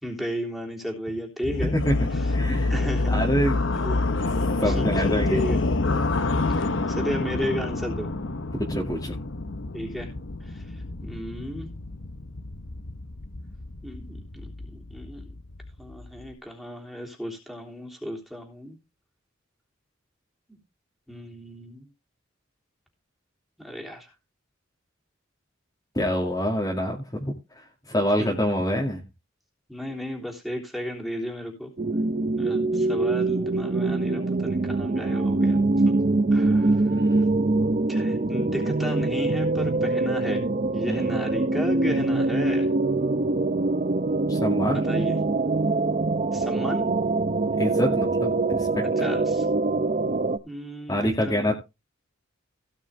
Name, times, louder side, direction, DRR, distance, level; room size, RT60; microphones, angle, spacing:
voice 1, 0.0-1.8 2.2-2.3 2.7-3.1 3.8-4.0 4.6-5.6 6.5-8.1 9.7-10.1 10.4-10.6 11.0-11.7 13.8-15.2 15.8-18.8 20.5-20.6 21.1-21.9 23.6-24.1 28.2-28.3 29.7-31.7 32.3-35.6 35.8-35.9 36.3-37.0 37.9-40.4 40.7-42.7 44.6-45.2 46.3-46.9 48.8-49.5 50.4-51.5, equal, ahead, 0 dB, 3.4 m, -34 dB
sound 1, 1.4-16.3, left 2 dB, 65° left, 1.0 m, -28 dB
voice 2, 1.6-1.9 2.3-2.7 3.1-3.7 4.6-5.4 8.5-9.2 25.9-27.3 27.9-29.0 37.0-37.3 40.8-41.1 44.3-44.8 47.6-49.1 50.9-51.5, equal, 20° left, -2 dB, 2.3 m, -26 dB
sound 2, 31.8-50.4, right 2 dB, 40° right, 0.6 m, -24 dB
17.5 x 6.1 x 3.5 m, 0.25 s
head